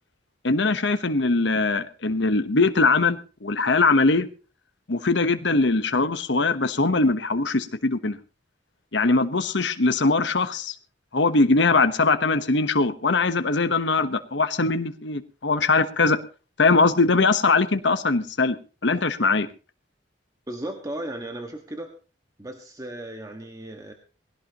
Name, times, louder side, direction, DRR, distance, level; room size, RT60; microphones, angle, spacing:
voice 1, 0.4-4.3 4.9-8.2 8.9-10.7 11.1-16.2 16.6-18.6 18.8-19.5, left 3 dB, 70° left, 10 dB, 1.1 m, -21 dB
voice 2, 20.5-22.0 22.4-23.9, right 1 dB, 20° right, 3 dB, 1.6 m, -35 dB
20.0 x 17.0 x 3.0 m, 0.35 s
head